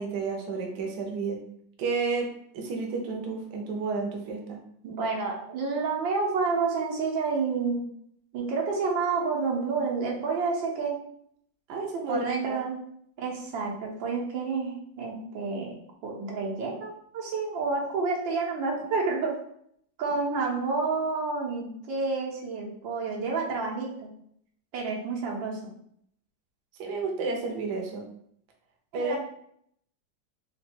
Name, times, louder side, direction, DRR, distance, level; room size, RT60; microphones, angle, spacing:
voice 1, 0.0-1.4 1.8-2.3 2.5-4.6 11.7-12.6 26.8-28.0 28.9-29.1, right 4 dB, 70° right, 1 dB, 1.2 m, -31 dB
voice 2, 4.8-7.8 8.3-11.0 12.1-12.8 13.2-15.8 16.0-19.3 20.0-24.1 24.7-25.7 28.9-29.2, right 4 dB, 85° right, -2 dB, 1.6 m, -29 dB
3.8 x 2.2 x 4.2 m, 0.68 s
omnidirectional pair, 2.0 m